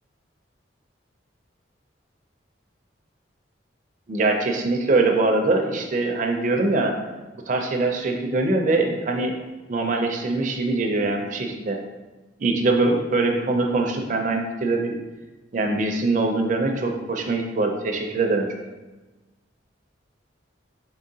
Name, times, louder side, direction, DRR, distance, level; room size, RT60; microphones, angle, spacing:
voice 1, 4.1-6.9 7.5-9.3 9.7-11.8 12.4-15.0 15.5-18.5, right 2 dB, 40° right, 2 dB, 0.4 m, -23 dB
4.0 x 3.7 x 2.7 m, 1.2 s
head